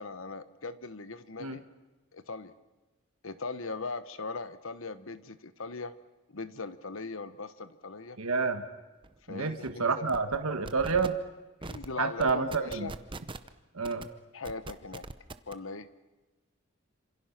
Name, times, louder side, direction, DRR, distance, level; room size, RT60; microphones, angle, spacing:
voice 1, 0.0-1.6 2.1-2.5 3.2-5.9 6.3-8.2 9.3-10.2 11.6-12.9 14.3-15.0 15.5-15.9, left 3 dB, 65° left, 13 dB, 1.1 m, -39 dB
voice 2, 8.2-8.6 9.3-11.2 12.0-12.9 13.7-14.1, right 4 dB, 75° right, 8 dB, 1.5 m, -29 dB
sound 1, 9.0-9.1 9.4-9.7 10.1-10.4 10.7-11.1 11.6-11.9 12.2-13.5 13.8-14.0 14.5-15.5, right 2 dB, 20° right, 0.8 m, -41 dB
27.0 x 27.0 x 6.0 m, 1.1 s
head